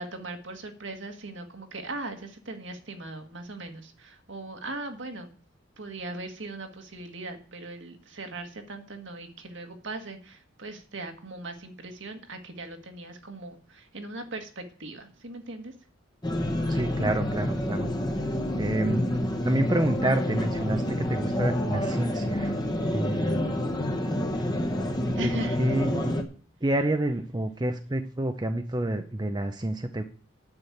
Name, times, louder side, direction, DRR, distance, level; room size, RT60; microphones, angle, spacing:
voice 1, 0.0-5.3 5.8-15.7 24.8-25.9, right 2 dB, 60° right, 5 dB, 1.7 m, -39 dB
sound 1, 16.2-26.2, left 1 dB, 20° left, 1.1 m, -28 dB
voice 2, 16.7-17.9 18.5-19.0 19.4-22.6 22.9-23.4 25.2-25.3 25.6-25.9 26.6-30.0, right 1 dB, 20° right, 7 dB, 0.6 m, -28 dB
9.7 x 6.1 x 8.5 m, 0.43 s
head